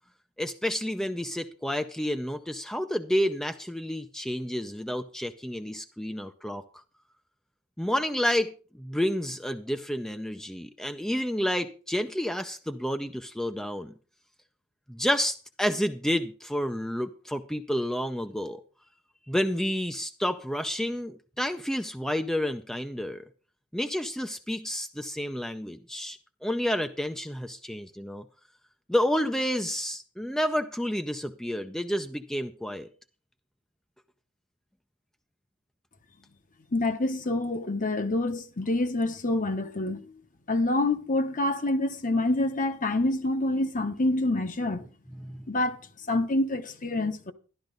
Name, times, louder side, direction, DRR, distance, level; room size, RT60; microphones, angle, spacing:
voice 1, 0.4-6.8 7.8-8.5 8.8-13.9 14.9-18.6 19.3-23.2 23.7-28.2 28.9-32.9 45.2-45.4, equal, 5° left, 0.5 m, -30 dB
voice 2, 36.7-40.0 40.5-44.8 45.5-45.8 46.1-47.3, left 2 dB, 40° left, 1.0 m, -27 dB
12.0 x 11.5 x 3.9 m
head